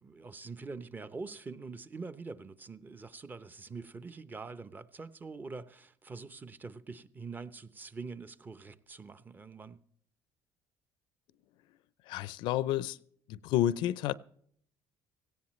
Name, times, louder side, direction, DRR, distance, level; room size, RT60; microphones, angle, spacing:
voice 1, 0.0-9.8, right 4 dB, 20° right, 0.8 m, -44 dB
voice 2, 12.1-13.0 13.3-14.1, left 12 dB, 75° left, 0.6 m, -30 dB
17.5 x 16.5 x 3.2 m
cardioid pair, 120°, 8 cm